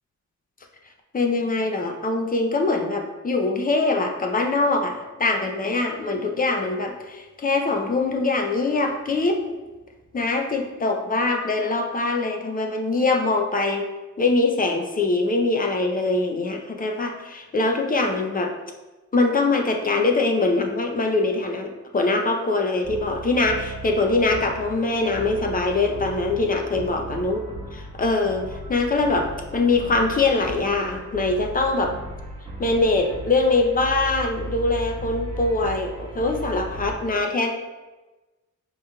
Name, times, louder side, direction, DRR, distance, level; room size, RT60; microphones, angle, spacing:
voice 1, 1.1-9.4 10.1-13.9 14.2-18.6 19.1-27.4 27.7-32.0 32.6-37.5, left 3 dB, 30° left, 3 dB, 0.5 m, -23 dB
sound 1, 22.8-36.9, right 2 dB, 20° right, 1.2 m, -36 dB
5.0 x 3.0 x 2.2 m, 1.2 s
wide cardioid pair, 110°, 31 cm